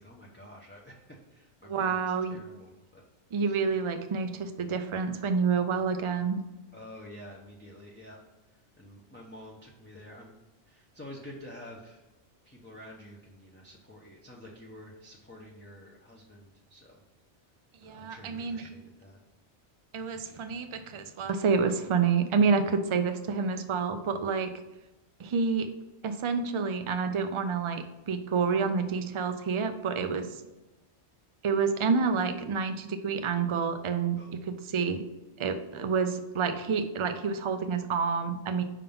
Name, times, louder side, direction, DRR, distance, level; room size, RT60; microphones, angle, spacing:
voice 1, 0.0-3.0 3.4-3.5 6.7-8.2 8.8-10.4 10.7-12.0 12.4-17.0 17.8-19.2 34.2-34.5, left 1 dB, 10° left, -4 dB, 0.6 m, -49 dB
voice 2, 1.6-2.4 3.3-6.4 17.8-18.7 19.9-24.5 25.2-25.7 26.0-30.3 31.4-34.2 34.5-35.0 35.4-38.6, right 5 dB, 50° right, 8 dB, 0.3 m, -28 dB
5.7 x 3.7 x 5.3 m, 1.0 s
omnidirectional pair, 1.2 m